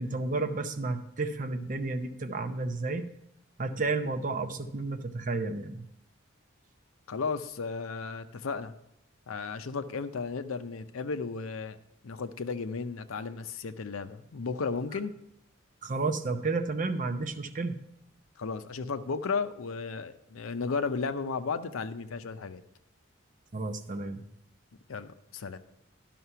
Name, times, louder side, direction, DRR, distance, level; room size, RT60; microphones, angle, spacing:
voice 1, 0.0-3.0 3.6-5.8 15.8-17.8 23.5-24.2, right 3 dB, 40° right, 8 dB, 0.6 m, -31 dB
voice 2, 7.1-8.7 9.3-11.8 12.0-15.1 18.4-22.6 24.9-25.6, left 4 dB, 80° left, 11 dB, 0.6 m, -34 dB
11.0 x 5.8 x 5.6 m, 0.81 s
head